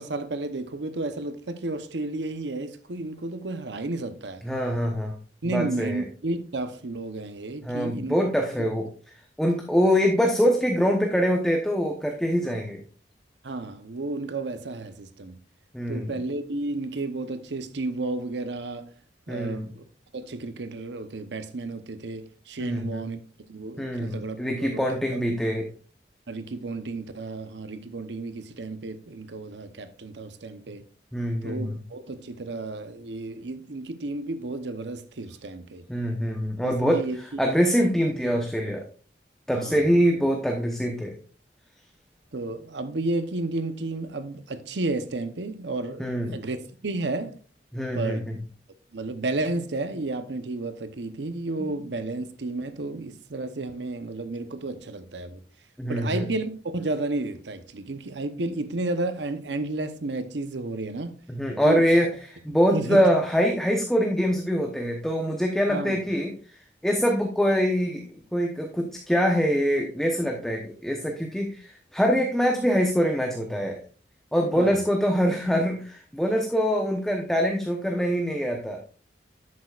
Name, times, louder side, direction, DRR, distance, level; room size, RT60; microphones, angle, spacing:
voice 1, 0.0-4.4 5.4-8.2 8.6-8.7 13.4-15.4 15.9-18.9 19.3-19.8 20.1-23.2 23.5-25.2 26.3-30.8 31.4-35.8 36.6-37.2 39.5-39.9 42.3-47.3 47.9-48.3 48.9-55.4 55.9-61.1 61.6-61.8 62.5-63.0 65.7-66.0 74.5-74.8, right 2 dB, 80° right, 0.8 m, -32 dB
voice 2, 4.4-5.2 5.4-6.0 7.6-8.9 9.4-12.8 15.7-16.1 19.3-19.7 22.6-23.0 23.8-25.7 31.1-31.7 35.9-37.1 37.4-38.8 39.5-41.1 46.0-46.4 47.7-48.3 51.6-51.7 55.8-56.2 61.3-62.1 62.4-66.3 66.8-68.0 68.3-73.8 74.3-78.8, equal, 5° left, 0.9 m, -24 dB
11.0 x 8.4 x 2.4 m
head